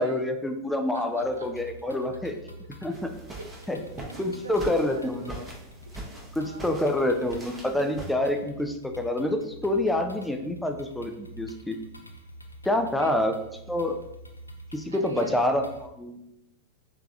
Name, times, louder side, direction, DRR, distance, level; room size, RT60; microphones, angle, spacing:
voice 1, 0.0-2.3 2.8-3.1 3.7-3.8 4.2-5.4 6.4-11.8 12.6-13.4 13.7-14.0 14.7-16.2, left 1 dB, 5° left, 5 dB, 0.4 m, -27 dB
voice 2, 0.9-1.5 3.4-5.5 5.9-7.0 12.8-13.1 14.9-15.4, right 3 dB, 75° right, 5 dB, 0.4 m, -43 dB
sound 1, 1.2-15.9, right 1 dB, 85° left, 0.3 m, -47 dB
sound 2, 2.9-8.1, right 2 dB, 10° right, 0.7 m, -42 dB
3.4 x 3.2 x 2.5 m, 0.82 s
figure-of-eight pair, 90°, 0 cm